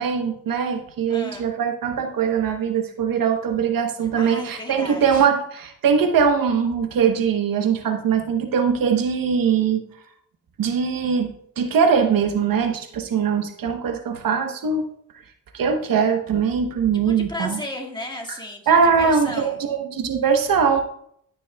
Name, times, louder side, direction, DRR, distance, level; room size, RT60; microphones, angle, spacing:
voice 1, 0.0-9.8 10.6-14.9 15.5-17.6 18.7-20.8, right 6 dB, 80° right, 5 dB, 1.0 m, -21 dB
voice 2, 1.1-1.5 4.1-5.3 17.1-19.6, left 1 dB, 15° left, -1 dB, 1.9 m, -34 dB
13.0 x 6.1 x 2.3 m, 0.68 s
cardioid pair, 65°, 33 cm